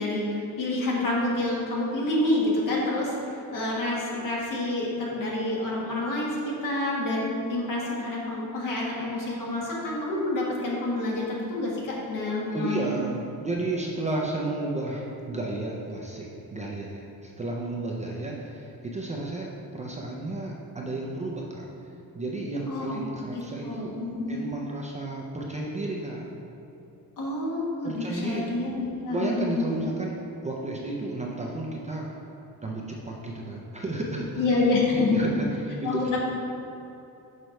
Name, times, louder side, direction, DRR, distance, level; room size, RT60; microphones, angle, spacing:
voice 1, 0.0-12.9 22.7-23.0 23.3-24.4 27.2-29.8 34.4-35.3 35.8-36.2, left 2 dB, 60° left, -4 dB, 1.6 m, -28 dB
voice 2, 12.3-21.7 22.1-23.9 24.3-26.3 27.8-28.5 29.1-30.2 30.4-32.1 32.6-34.6 34.9-36.2, right 2 dB, 20° right, -2 dB, 0.5 m, -32 dB
6.4 x 4.4 x 5.2 m, 2.9 s
wide cardioid pair, 180°, 37 cm